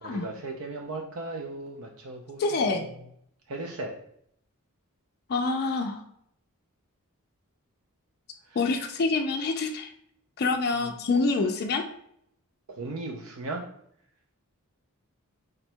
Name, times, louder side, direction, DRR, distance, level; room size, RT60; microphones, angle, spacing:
voice 1, 0.0-2.9 3.5-3.9 12.7-13.6, right 2 dB, 65° right, 2 dB, 0.5 m, -37 dB
voice 2, 2.4-2.9 5.3-6.0 8.6-9.9 10.4-11.8, left 3 dB, 45° left, 3 dB, 0.4 m, -26 dB
5.1 x 2.2 x 4.3 m, 0.71 s
head